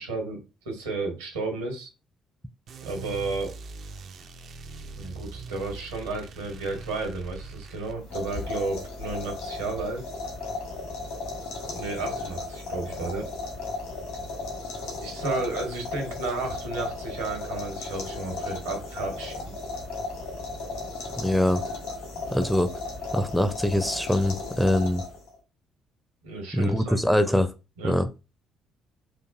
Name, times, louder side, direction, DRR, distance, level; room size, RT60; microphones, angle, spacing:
voice 1, 0.0-1.9 2.8-3.5 5.0-10.0 11.7-13.3 15.0-19.5 22.2-22.5 26.2-27.0 27.8-27.9, right 3 dB, 75° right, 1.2 m, -33 dB
sound 1, 2.7-8.0, right 4 dB, 50° right, 0.5 m, -41 dB
sound 2, 8.0-25.4, left 3 dB, 70° left, 1.3 m, -35 dB
voice 2, 21.2-21.6 22.3-22.7 23.1-25.0 26.5-27.5 27.8-28.1, left 1 dB, 5° left, 0.5 m, -23 dB
4.6 x 2.5 x 2.5 m
figure-of-eight pair, 45°, 0 cm